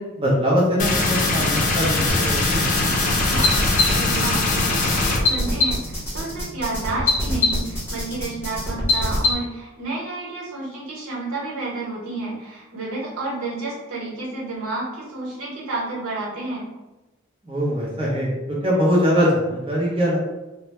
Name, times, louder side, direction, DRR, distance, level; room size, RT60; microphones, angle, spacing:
voice 1, 0.2-2.7 17.4-18.4 18.6-20.2, equal, 25° right, -6 dB, 0.6 m, -22 dB
sound 1, 0.8-5.2, left 3 dB, 35° left, 0.3 m, -21 dB
sound 2, 2.1-9.3, left 2 dB, 10° left, 0.8 m, -24 dB
voice 2, 3.2-16.7, right 2 dB, 90° right, -6 dB, 1.0 m, -30 dB
2.1 x 2.1 x 2.9 m, 1.1 s
head